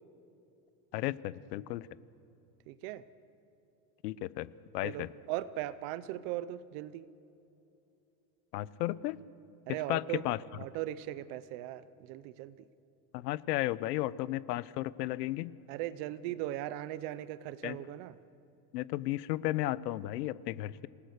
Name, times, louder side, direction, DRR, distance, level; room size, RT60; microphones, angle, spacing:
voice 1, 0.9-1.9 4.0-4.5 4.7-5.1 8.5-9.2 9.9-10.4 13.1-15.5 17.6-17.8 18.7-20.9, left 16 dB, 90° left, 18 dB, 0.9 m, -34 dB
voice 2, 2.7-3.0 4.8-7.1 9.7-10.2 10.5-12.6 15.7-18.2, right 14 dB, 35° right, 17 dB, 0.5 m, -38 dB
28.5 x 19.5 x 6.7 m, 2.9 s
supercardioid pair, 170°, 47 cm